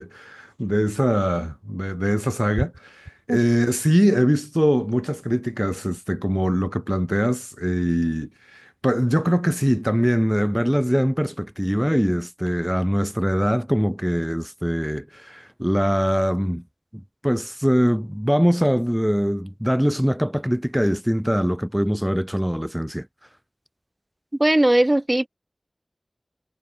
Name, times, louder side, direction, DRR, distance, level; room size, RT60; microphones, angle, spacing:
voice 1, 0.0-16.6 16.9-23.1, equal, 5° right, 4.3 m, -22 dB
voice 2, 24.4-25.3, right 1 dB, 30° right, 0.7 m, -18 dB
wide cardioid pair, 45°, 0 cm